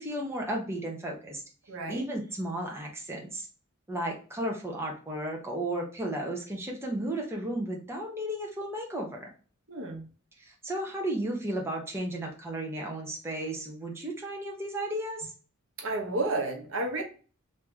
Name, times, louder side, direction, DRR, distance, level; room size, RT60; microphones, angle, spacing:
voice 1, 0.0-1.4 1.9-3.5 3.9-9.3 10.4-15.3, right 1 dB, 10° right, -1 dB, 0.7 m, -34 dB
voice 2, 1.7-2.0 9.7-10.1 15.8-17.0, right 2 dB, 60° right, 2 dB, 0.9 m, -31 dB
3.2 x 2.8 x 3.4 m, 0.38 s
head